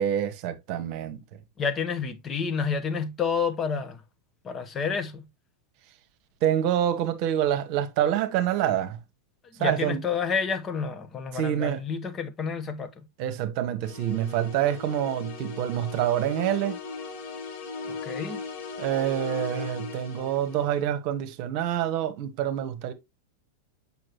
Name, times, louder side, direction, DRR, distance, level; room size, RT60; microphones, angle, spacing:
voice 1, 0.0-1.4 6.4-9.0 9.6-10.0 11.3-11.8 13.2-16.8 18.8-22.9, right 10 dB, 45° right, 1.1 m, -27 dB
voice 2, 1.6-4.0 4.4-5.3 9.4-13.1 17.8-18.4, left 6 dB, 25° left, 0.9 m, -29 dB
sound 1, 13.8-20.8, left 4 dB, 50° left, 2.6 m, -38 dB
7.6 x 5.7 x 2.9 m
figure-of-eight pair, 90°, 0 cm